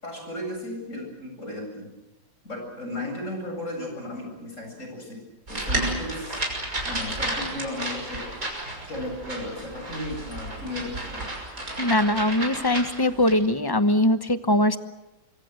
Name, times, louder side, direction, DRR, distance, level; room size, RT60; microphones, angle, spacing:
voice 1, 0.0-1.9 2.4-5.2 5.5-6.4 6.8-8.3 8.9-11.2, left 1 dB, 40° left, 2 dB, 8.3 m, -35 dB
sound 1, 5.5-13.4, right 1 dB, 50° right, 6.5 m, -32 dB
voice 2, 11.8-14.8, left 1 dB, 20° left, 11 dB, 0.7 m, -21 dB
25.5 x 24.5 x 7.9 m, 0.98 s
omnidirectional pair, 1.9 m